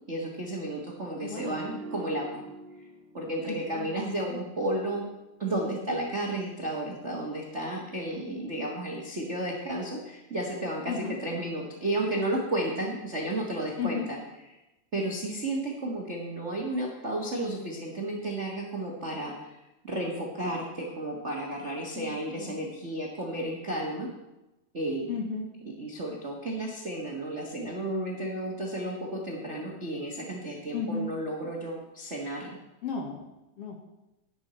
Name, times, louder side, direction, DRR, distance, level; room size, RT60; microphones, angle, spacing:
voice 1, 0.1-2.4 3.1-5.0 5.4-14.2 14.9-19.6 19.8-24.1 24.7-25.1 25.8-32.5, right 1 dB, 45° right, -2 dB, 0.9 m, -32 dB
voice 2, 1.2-1.7 3.5-4.4 10.9-11.2 13.8-14.1 22.0-22.6 25.1-25.5 30.7-31.1 32.8-33.2 33.6-33.9, left 5 dB, 55° left, 1 dB, 1.9 m, -35 dB
sound 1, 1.3-4.6 4.9-5.1, right 2 dB, 85° right, 2.4 m, -45 dB
11.0 x 11.0 x 4.3 m, 0.98 s
omnidirectional pair, 3.6 m